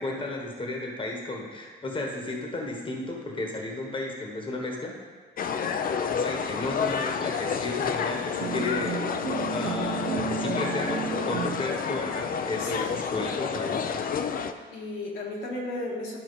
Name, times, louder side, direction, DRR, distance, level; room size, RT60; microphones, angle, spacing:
voice 1, 0.0-5.0 6.0-9.2 9.5-14.0, left 2 dB, 25° left, 0 dB, 1.2 m, -33 dB
sound 1, 5.4-14.5, left 6 dB, 45° left, 0.5 m, -30 dB
voice 2, 5.5-5.8 12.6-13.0 14.7-16.2, left 2 dB, 85° left, -3 dB, 1.9 m, -35 dB
sound 2, 8.4-11.7, right 8 dB, 65° right, 0.8 m, -33 dB
12.0 x 4.3 x 4.0 m, 1.5 s
cardioid pair, 90°, 20 cm